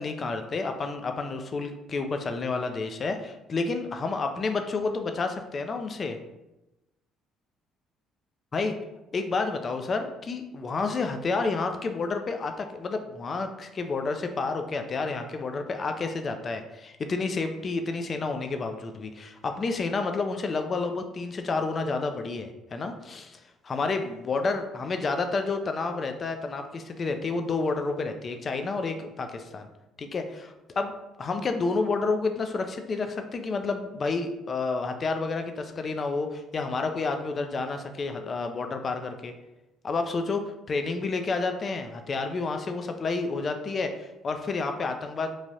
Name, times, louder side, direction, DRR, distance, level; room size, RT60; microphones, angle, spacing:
voice 1, 0.0-6.2 8.5-8.7 9.1-29.7 30.0-30.9 31.2-39.3 39.8-45.3, left 3 dB, 45° left, 6 dB, 0.3 m, -30 dB
3.1 x 2.5 x 2.7 m, 0.97 s
hypercardioid pair, 65°, 0 cm